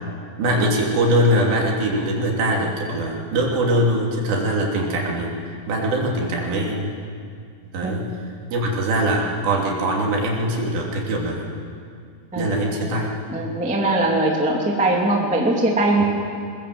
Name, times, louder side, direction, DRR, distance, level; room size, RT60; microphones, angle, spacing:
voice 1, 0.4-5.4 5.7-6.9 7.7-8.1 8.5-11.5 12.4-13.2 16.0-16.1, right 1 dB, 75° right, -1 dB, 5.2 m, -22 dB
voice 2, 12.3-16.0, right 2 dB, 5° right, -1 dB, 1.3 m, -21 dB
22.0 x 20.0 x 7.8 m, 2.3 s
omnidirectional pair, 5.1 m